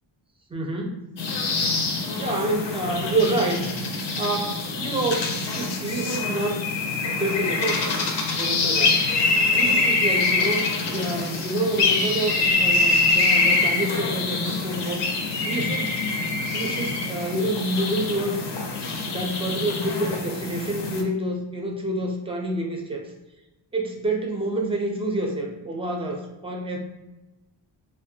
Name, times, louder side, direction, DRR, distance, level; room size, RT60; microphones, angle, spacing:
voice 1, 0.5-1.0 2.1-3.6 4.2-6.6 7.1-7.9 8.3-9.0 9.5-15.2 15.4-16.0 16.5-18.5 19.0-23.1 23.7-26.8, right 1 dB, 10° right, 1 dB, 0.4 m, -28 dB
sound 1, 1.2-21.0, left 3 dB, 60° left, 0.6 m, -24 dB
2.6 x 2.2 x 2.7 m, 1.0 s
cardioid pair, 75°, 49 cm